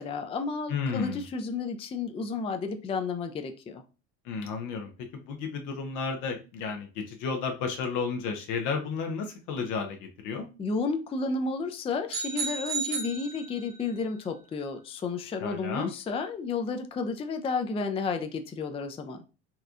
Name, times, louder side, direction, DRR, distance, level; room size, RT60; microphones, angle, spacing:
voice 1, 0.0-3.8 10.6-19.2, left 4 dB, 20° left, 7 dB, 0.4 m, -32 dB
voice 2, 0.7-1.2 4.3-10.0 10.2-10.5 15.4-15.9, left 5 dB, 65° left, 4 dB, 0.7 m, -32 dB
sound 1, 12.1-13.9, right 5 dB, 65° right, 1.3 m, -34 dB
4.2 x 2.3 x 2.4 m, 0.32 s
supercardioid pair, 85°, 33 cm